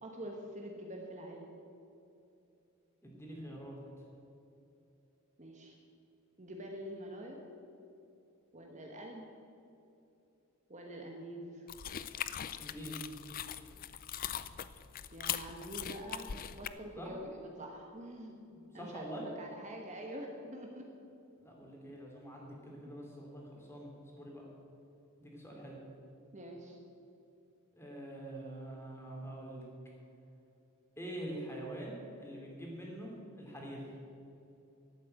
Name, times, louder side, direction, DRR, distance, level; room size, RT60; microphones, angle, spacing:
voice 1, 0.0-1.5 5.4-5.8 6.4-7.4 8.5-9.2 10.7-11.7 15.1-20.8 22.8-22.9 26.3-26.8, right 1 dB, 30° right, 1 dB, 1.3 m, -46 dB
voice 2, 3.0-3.8 12.6-13.1 17.0-17.1 18.7-19.3 21.4-24.4 25.2-25.8 27.8-29.7 31.0-33.9, right 1 dB, 10° left, -2 dB, 3.0 m, -45 dB
sound 1, 11.7-16.7, left 10 dB, 40° left, 0.4 m, -41 dB
12.0 x 8.5 x 8.9 m, 2.7 s
head